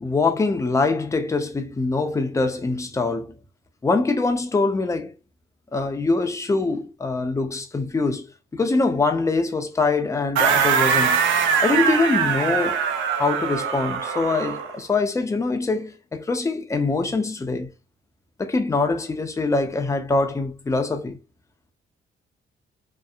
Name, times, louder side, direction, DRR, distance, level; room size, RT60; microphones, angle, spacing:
voice 1, 0.0-3.3 3.8-5.1 5.7-11.2 11.6-12.8 13.2-17.7 18.4-21.2, left 3 dB, 15° left, 0.5 m, -23 dB
sound 1, 10.4-14.8, right 7 dB, 75° right, 0.4 m, -22 dB
2.7 x 2.0 x 2.4 m
cardioid pair, 90°, 20 cm